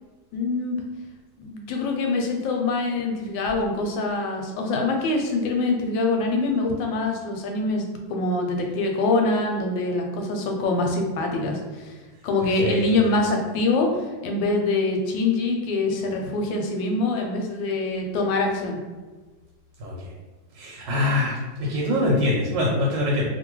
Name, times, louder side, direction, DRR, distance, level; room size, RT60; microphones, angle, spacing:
voice 1, 0.3-0.8 1.4-11.9 12.2-18.8, left 3 dB, 90° left, 2 dB, 1.3 m, -24 dB
voice 2, 20.6-23.3, left 1 dB, 90° right, -4 dB, 1.4 m, -23 dB
2.8 x 2.7 x 3.0 m, 1.3 s
omnidirectional pair, 2.0 m